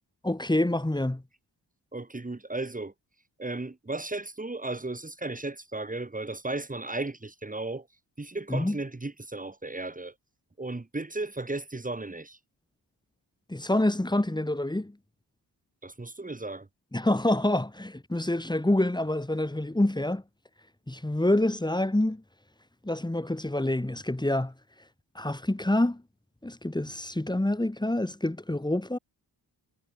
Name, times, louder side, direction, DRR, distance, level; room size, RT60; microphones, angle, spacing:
voice 1, 0.2-1.2 8.5-8.8 13.5-15.0 16.9-20.2 20.9-22.2 22.8-24.5 25.1-26.0 26.4-29.0, left 1 dB, 10° left, 5.9 m, -27 dB
voice 2, 1.9-2.9 3.4-7.9 8.2-10.1 10.6-12.4 15.8-16.7, right 2 dB, 20° right, 5.3 m, -35 dB
wide cardioid pair, 140°, 42 cm